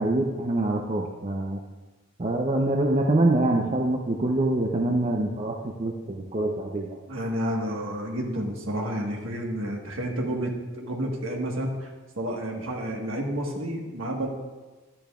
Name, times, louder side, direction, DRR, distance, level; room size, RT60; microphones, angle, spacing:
voice 1, 0.0-1.6 2.2-7.0, right 2 dB, 30° right, 1 dB, 0.5 m, -25 dB
voice 2, 7.1-11.9 12.2-14.3, equal, 70° right, 1 dB, 1.5 m, -30 dB
12.0 x 10.5 x 2.4 m, 1.2 s
head